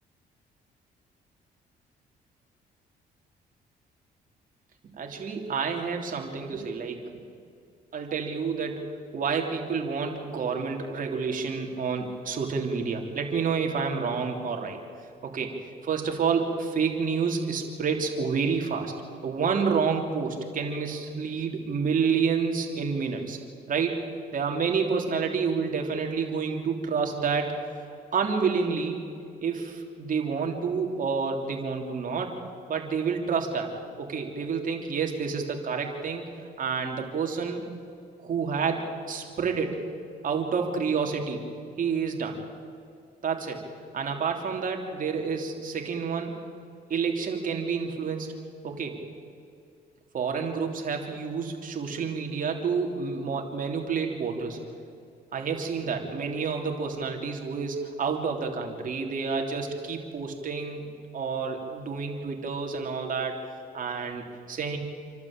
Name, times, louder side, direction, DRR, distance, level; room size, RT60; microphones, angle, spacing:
voice 1, 4.9-7.1 7.9-8.9 9.1-14.8 15.2-18.9 19.2-23.4 23.7-24.0 24.3-27.5 28.1-29.0 29.4-32.3 32.7-33.7 34.0-36.2 36.6-37.6 38.2-39.8 40.2-41.4 41.8-42.4 43.2-43.6 43.9-46.3 46.9-48.3 48.6-49.0 50.1-54.6 55.3-63.4 63.7-64.8, right 5 dB, 50° right, 2 dB, 3.4 m, -29 dB
28.0 x 12.0 x 8.8 m, 2.3 s
cardioid pair, 90°, 17 cm